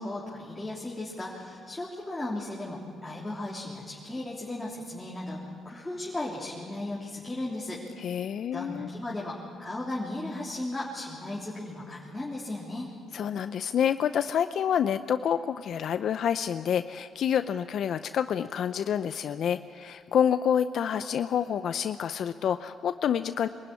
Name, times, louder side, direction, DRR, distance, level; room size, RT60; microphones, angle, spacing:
voice 1, 0.0-7.8 8.5-12.9, left 1 dB, 15° left, -5 dB, 3.3 m, -36 dB
voice 2, 8.0-8.9 13.1-23.5, left 8 dB, 65° left, 11 dB, 0.5 m, -28 dB
23.5 x 13.5 x 9.6 m, 2.4 s
cardioid pair, 80°, 0 cm